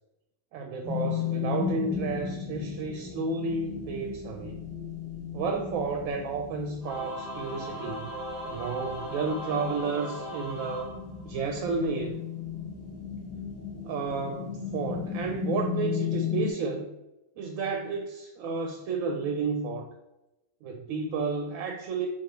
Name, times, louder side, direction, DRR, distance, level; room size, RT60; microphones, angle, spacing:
voice 1, 0.5-4.6 5.3-8.1 8.4-11.0 11.2-12.2 13.8-16.9 17.4-19.9 20.6-22.1, right 4 dB, 70° right, 4 dB, 0.9 m, -32 dB
sound 1, 0.8-16.5, left 7 dB, 10° right, 1.0 m, -35 dB
Singing / Musical instrument, 6.8-11.7, equal, 40° left, 1.9 m, -38 dB
6.7 x 2.5 x 3.0 m, 0.94 s
omnidirectional pair, 1.5 m